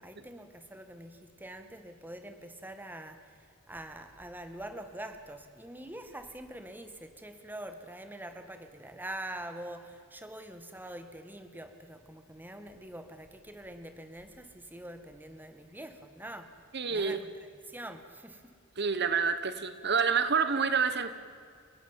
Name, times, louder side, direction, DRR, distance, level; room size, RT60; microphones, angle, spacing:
voice 1, 0.0-16.6 16.9-17.3 17.6-18.6, right 1 dB, 10° right, 8 dB, 1.8 m, -45 dB
voice 2, 16.7-17.2 18.8-21.1, right 5 dB, 55° right, 11 dB, 1.4 m, -28 dB
29.5 x 17.0 x 9.1 m, 2.2 s
head